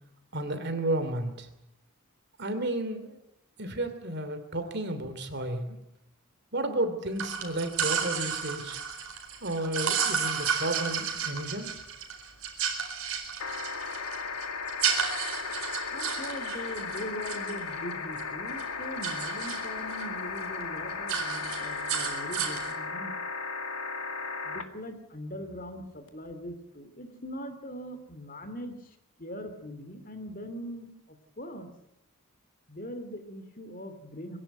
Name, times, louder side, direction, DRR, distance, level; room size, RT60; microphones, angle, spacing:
voice 1, 0.3-1.5 2.4-3.2 3.6-5.8 6.5-8.8 9.4-11.7, right 1 dB, 50° right, 9 dB, 2.9 m, -32 dB
sound 1, 7.2-18.2 18.5-20.1 20.4-20.6 20.9-22.7, right 7 dB, 70° right, 4.6 m, -32 dB
sound 2, 13.4-24.6 26.1-26.2, left 5 dB, 80° left, 1.9 m, -36 dB
voice 2, 15.9-23.1 24.4-28.8 29.2-31.7 32.7-34.4, equal, 40° left, 9 dB, 2.5 m, -41 dB
23.0 x 16.5 x 9.0 m, 0.84 s
head